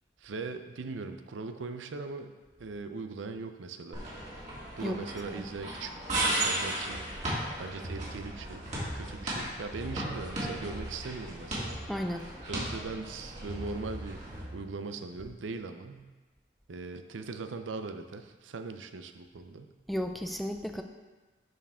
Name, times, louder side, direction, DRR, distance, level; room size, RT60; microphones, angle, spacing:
voice 1, 0.2-2.3 2.6-4.0 4.8-7.0 7.6-8.6 8.9-11.8 12.5-16.1 16.7-19.7, right 4 dB, 90° right, 8 dB, 0.6 m, -40 dB
Bark, 3.8-5.5 5.9-7.6 8.3-9.3 9.6-10.6 11.3-13.0, equal, 45° left, 2.0 m, -58 dB
sound 1, 3.9-14.4, right 1 dB, 40° right, 2.3 m, -36 dB
sound 2, 6.9-15.2, right 1 dB, 60° right, 2.1 m, -44 dB
voice 2, 11.9-12.5 19.9-20.8, equal, ahead, 5 dB, 0.4 m, -34 dB
10.5 x 4.8 x 3.6 m, 1.2 s
head